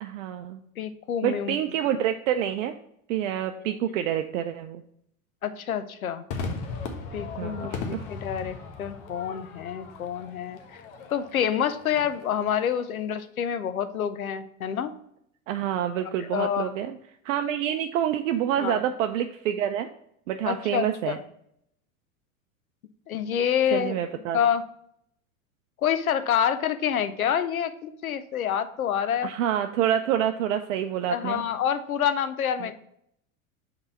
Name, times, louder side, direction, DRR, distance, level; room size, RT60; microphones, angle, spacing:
voice 1, 0.0-0.6 1.2-2.7 3.1-4.8 7.4-8.1 15.5-17.0 17.2-19.9 20.3-21.2 23.7-24.4 29.2-31.4 32.6-32.7, right 10 dB, 65° right, 7 dB, 0.6 m, -27 dB
voice 2, 0.8-1.6 5.4-6.2 7.1-10.6 11.1-14.9 16.2-16.7 18.6-18.8 20.5-21.2 23.1-24.0 24.3-24.6 25.8-29.3 31.1-32.7, left 9 dB, 85° left, 12 dB, 0.7 m, -27 dB
Crowd / Fireworks, 6.3-12.8, left 4 dB, 50° left, 1.2 m, -38 dB
5.4 x 4.0 x 5.8 m, 0.73 s
hypercardioid pair, 90°, 41 cm